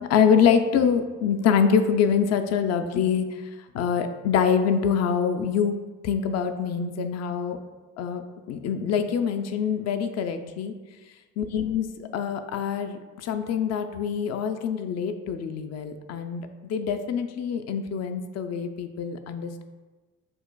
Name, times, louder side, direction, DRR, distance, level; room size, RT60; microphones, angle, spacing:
voice 1, 0.0-3.4 3.7-5.8 6.0-7.6 8.0-10.8 11.4-19.6, left 7 dB, 45° left, 8 dB, 0.4 m, -25 dB
6.3 x 2.4 x 2.2 m, 1.3 s
hypercardioid pair, 50°, 38 cm